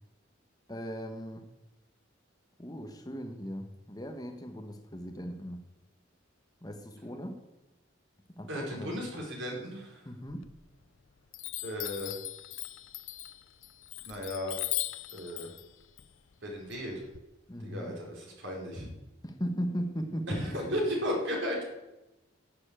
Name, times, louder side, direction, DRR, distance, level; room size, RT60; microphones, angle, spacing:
voice 1, 0.7-1.5 2.6-5.6 6.6-7.4 8.4-9.0 10.0-10.5 17.5-17.9 19.2-20.8, equal, 20° left, 5 dB, 1.2 m, -38 dB
voice 2, 8.5-10.1 11.6-12.2 14.0-14.6 15.1-15.5 16.4-17.0 17.6-18.9 20.3-21.6, equal, 65° right, -1 dB, 4.7 m, -35 dB
Chime, 10.3-11.0 11.3-17.2, left 17 dB, 75° left, 0.6 m, -39 dB
11.5 x 7.1 x 8.9 m, 0.98 s
head